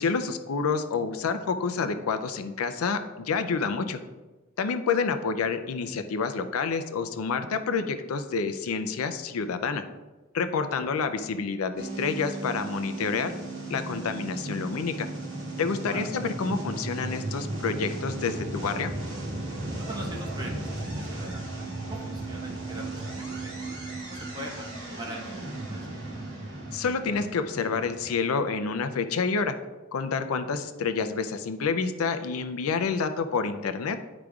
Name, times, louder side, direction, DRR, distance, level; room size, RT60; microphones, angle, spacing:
voice 1, 0.0-4.0 4.6-9.8 10.3-13.3 13.7-15.1 15.6-18.9 26.7-29.6 29.9-34.0, left 5 dB, 80° left, 9 dB, 0.5 m, -28 dB
sound 1, 11.8-28.1, right 2 dB, 70° right, 2.1 m, -36 dB
voice 2, 19.8-21.5 21.8-23.7 24.0-24.7 25.0-25.9, equal, 20° right, -1 dB, 1.2 m, -42 dB
10.5 x 4.9 x 2.4 m, 1.2 s
head